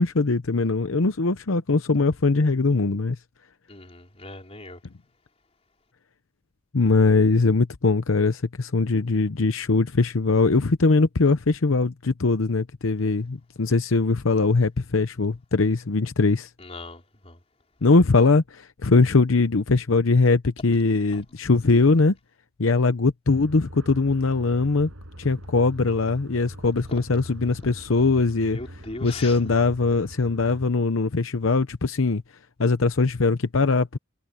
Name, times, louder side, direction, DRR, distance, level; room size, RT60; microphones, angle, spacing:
voice 1, 0.0-3.2 6.7-16.5 17.8-22.1 22.6-24.9 25.2-28.6 29.0-32.2 32.6-34.0, left 3 dB, 75° left, 0.8 m, -21 dB
voice 2, 3.7-4.8 16.6-17.4 21.1-21.2 28.5-29.4, left 2 dB, 30° left, 4.2 m, -40 dB
sound 1, 23.3-30.7, equal, 80° right, 5.9 m, -42 dB
head